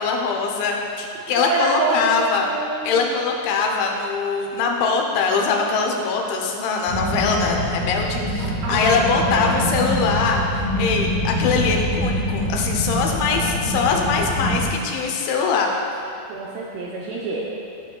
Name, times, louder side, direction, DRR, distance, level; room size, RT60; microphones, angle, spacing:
voice 1, 0.0-2.5 2.8-15.7, left 5 dB, 85° left, 1 dB, 3.1 m, -22 dB
voice 2, 1.4-3.3 8.4-9.5 13.0-13.5 16.3-17.4, right 3 dB, 80° right, -5 dB, 2.6 m, -27 dB
sound 1, 6.9-14.7, equal, 70° left, 2.5 m, -25 dB
14.0 x 6.3 x 2.3 m, 2.5 s
omnidirectional pair, 5.2 m